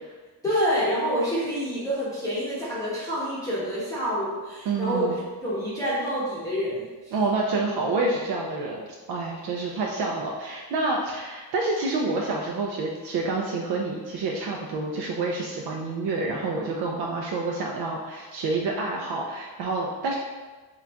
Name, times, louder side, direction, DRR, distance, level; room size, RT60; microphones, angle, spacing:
voice 1, 0.4-7.1, equal, 10° left, -10 dB, 0.7 m, -27 dB
voice 2, 4.7-5.2 7.1-20.2, right 3 dB, 85° right, -1 dB, 0.5 m, -28 dB
3.8 x 2.3 x 3.4 m, 1.3 s
wide cardioid pair, 175°, 37 cm